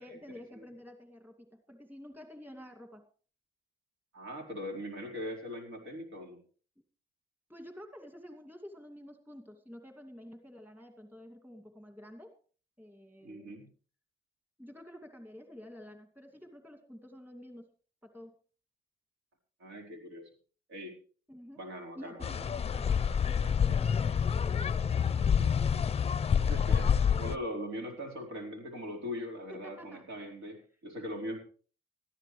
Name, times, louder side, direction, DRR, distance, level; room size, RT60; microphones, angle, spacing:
voice 1, 0.0-3.1 6.8-6.9 7.5-12.4 12.8-13.6 14.6-17.7 18.0-18.4 21.3-21.6 21.9-25.5 29.5-30.1, equal, 10° right, 5 dB, 2.4 m, -50 dB
voice 2, 4.1-6.4 13.2-13.7 19.6-20.3 20.7-20.9 21.6-22.4 26.4-31.4, equal, 80° right, 1 dB, 4.6 m, -40 dB
sound 1, 22.2-27.4, left 7 dB, 30° left, 0.5 m, -28 dB
20.0 x 14.0 x 3.3 m, 0.40 s
cardioid pair, 90°, 20 cm